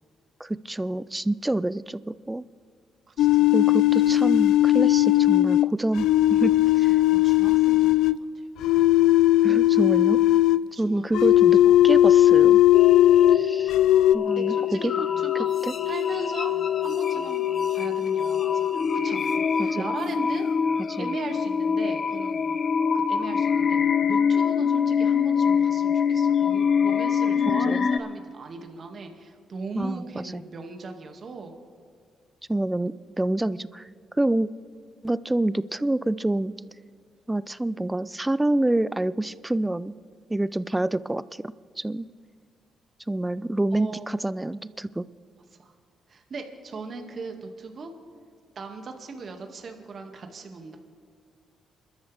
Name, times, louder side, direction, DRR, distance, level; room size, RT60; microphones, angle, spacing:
voice 1, 0.4-2.4 3.5-7.0 9.4-10.2 10.8-11.6 11.8-12.6 13.3-13.7 14.1-15.1 15.6-15.7 19.6-19.9 20.9-21.1 27.7-27.9 29.8-30.1 30.3-30.4 32.5-33.9 34.2-34.5 35.0-36.5 37.3-40.0 40.3-42.1 43.1-45.1, right 1 dB, 15° right, 17 dB, 0.5 m, -27 dB
voice 2, 3.1-3.8 7.1-8.5 10.7-11.0 11.6-11.8 14.3-15.5 15.9-20.5 21.0-22.4 22.9-31.6 43.7-44.3 45.6-45.7 46.1-47.9 48.6-50.8, right 4 dB, 55° right, 3 dB, 2.2 m, -38 dB
sound 1, 3.2-8.2 8.6-10.6 11.1-13.4 13.7-14.1, left 14 dB, 80° left, 0.3 m, -18 dB
sound 2, 12.7-28.0, left 7 dB, 55° left, 0.8 m, -24 dB
28.5 x 13.0 x 3.5 m, 2.1 s
supercardioid pair, 50°, 0 cm